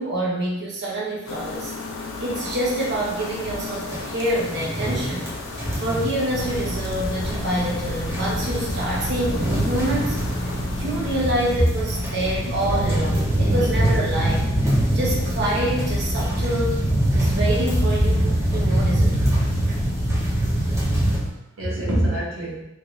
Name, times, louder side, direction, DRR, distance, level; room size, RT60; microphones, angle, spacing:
voice 1, 0.0-1.7 2.2-5.2 5.8-10.2 10.8-14.5 14.9-16.8 17.1-19.2, right 1 dB, 60° right, -5 dB, 0.7 m, -26 dB
sound 1, 1.3-11.3, left 3 dB, 80° left, 0.4 m, -35 dB
sound 2, 2.4-2.5 2.8-2.9 3.1-3.3 3.7-21.2, right 1 dB, 15° right, 0.7 m, -24 dB
voice 2, 5.4-5.8 11.6-11.7 12.4-12.5 12.9-13.1 21.6-22.6, right 1 dB, 85° right, -6 dB, 1.2 m, -26 dB
sound 3, 6.3-21.3, equal, 30° left, 0.5 m, -29 dB
3.2 x 2.9 x 2.5 m, 0.90 s
head